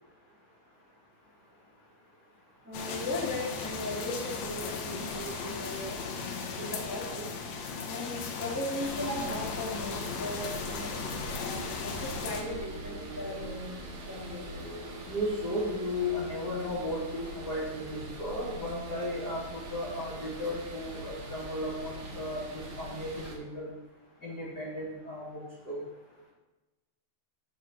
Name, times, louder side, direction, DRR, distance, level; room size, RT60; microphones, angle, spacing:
voice 1, 2.6-7.2 7.8-11.0 11.3-13.7 14.0-14.4, left 1 dB, 5° right, -6 dB, 1.2 m, -37 dB
sound 1, 2.7-12.4, left 5 dB, 70° left, 3.3 m, -37 dB
sound 2, 8.8-23.4, right 1 dB, 50° right, 2.4 m, -43 dB
voice 2, 15.0-23.7 24.2-25.8, left 1 dB, 35° left, -7 dB, 1.9 m, -35 dB
12.5 x 4.5 x 6.4 m, 1.1 s
omnidirectional pair, 5.7 m